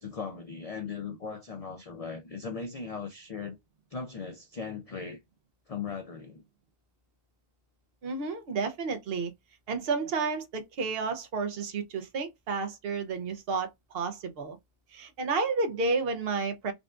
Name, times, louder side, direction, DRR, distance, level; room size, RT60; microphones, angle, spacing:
voice 1, 0.0-3.6 3.9-5.2 5.7-6.4, left 5 dB, 55° left, 0.4 m, -38 dB
voice 2, 8.0-9.3 9.7-14.6 14.9-16.7, right 4 dB, 60° right, 0.9 m, -31 dB
5.0 x 2.3 x 2.4 m
omnidirectional pair, 1.2 m